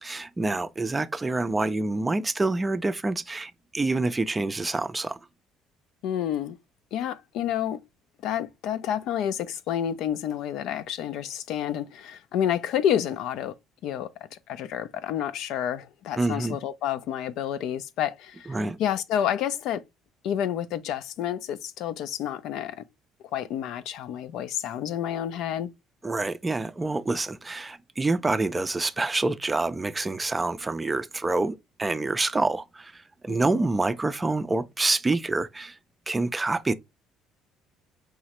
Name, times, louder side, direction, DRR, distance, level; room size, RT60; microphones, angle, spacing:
voice 1, 0.0-5.2 16.2-16.6 18.5-18.8 26.0-35.8 36.1-36.7, right 2 dB, 15° right, 0.4 m, -27 dB
voice 2, 6.0-6.6 6.9-7.8 8.2-13.5 13.8-19.8 20.2-22.8 23.3-25.7 33.3-33.6, left 10 dB, 70° left, 0.4 m, -29 dB
4.8 x 3.1 x 2.9 m
cardioid pair, 105°, 0 cm